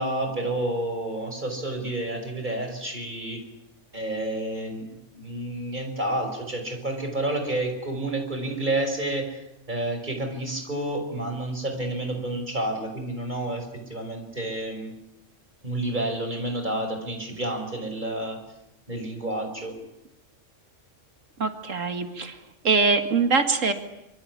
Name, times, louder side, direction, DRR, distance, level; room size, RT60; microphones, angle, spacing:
voice 1, 0.0-3.4 3.9-4.8 5.1-9.4 9.7-14.9 15.6-18.4 18.9-19.8, right 1 dB, 35° right, 5 dB, 5.8 m, -30 dB
voice 2, 21.4-22.3 22.6-23.7, right 4 dB, 80° right, 8 dB, 2.4 m, -23 dB
25.0 x 24.5 x 9.6 m, 0.87 s
omnidirectional pair, 1.3 m